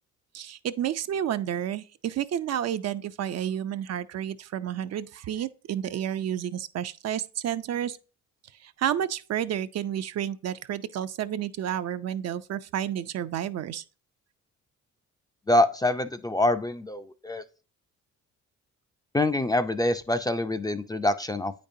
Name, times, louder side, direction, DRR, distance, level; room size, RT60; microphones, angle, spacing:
voice 1, 0.3-8.0 8.6-13.8, right 10 dB, 60° right, 0.5 m, -30 dB
voice 2, 15.5-17.4 19.1-21.5, left 1 dB, 15° left, 0.4 m, -25 dB
8.5 x 5.2 x 2.7 m
cardioid pair, 90°, 30 cm